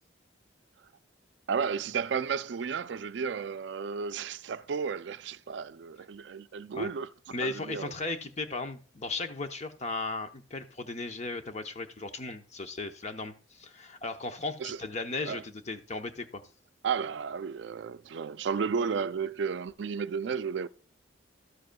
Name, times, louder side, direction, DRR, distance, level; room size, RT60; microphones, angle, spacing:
voice 1, 1.5-7.1 7.4-7.9 14.6-14.8 15.2-15.4 16.8-20.7, right 6 dB, 70° right, 0.4 m, -33 dB
voice 2, 7.3-16.4, left 3 dB, 40° left, 0.8 m, -36 dB
12.5 x 7.7 x 2.2 m
head